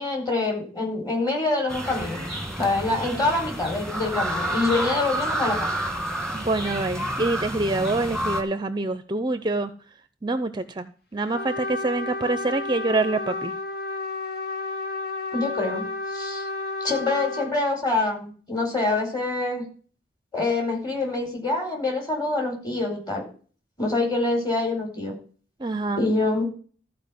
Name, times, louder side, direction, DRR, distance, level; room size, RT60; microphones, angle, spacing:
voice 1, 0.0-2.2 2.6-5.7 15.3-16.5 16.8-19.6 20.3-23.2 23.8-25.1 26.0-26.4, left 2 dB, 25° left, 1 dB, 4.9 m, -25 dB
sound 1, 1.7-8.4, right 1 dB, 5° left, 2.1 m, -29 dB
voice 2, 6.3-9.7 10.2-13.5 25.6-26.1, right 2 dB, 25° right, 11 dB, 0.6 m, -26 dB
Trumpet, 11.3-17.5, left 2 dB, 60° left, 2.2 m, -31 dB
14.0 x 4.9 x 7.6 m, 0.41 s
head